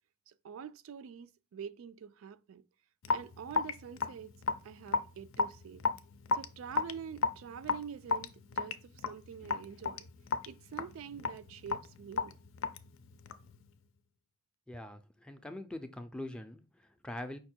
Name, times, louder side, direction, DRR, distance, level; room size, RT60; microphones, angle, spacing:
voice 1, 0.3-2.6 3.1-4.4 4.6-5.8 6.3-10.1 10.5-12.4, right 7 dB, 90° right, 0.3 m, -46 dB
Raindrop / Drip, 3.0-13.6, left 4 dB, 85° left, 0.5 m, -34 dB
voice 2, 14.7-17.4, left 1 dB, 5° left, 0.3 m, -43 dB
5.3 x 2.2 x 4.3 m
head